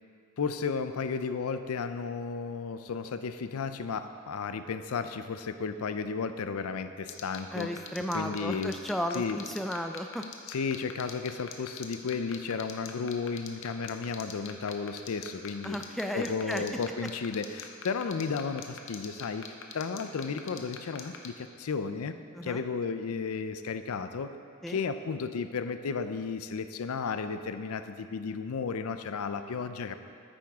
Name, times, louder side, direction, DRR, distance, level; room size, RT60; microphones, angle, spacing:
voice 1, 0.4-7.7 8.1-8.8 9.1-9.4 10.5-15.8 16.1-19.5 19.7-22.2 22.4-24.3 24.7-29.9, left 5 dB, 90° left, 10 dB, 0.5 m, -33 dB
sound 1, 7.1-21.3, left 9 dB, 65° left, 0.8 m, -41 dB
voice 2, 7.5-10.2 15.6-16.6 22.4-22.6 24.6-24.8, equal, ahead, 5 dB, 0.3 m, -34 dB
9.3 x 8.8 x 3.6 m, 2.4 s
head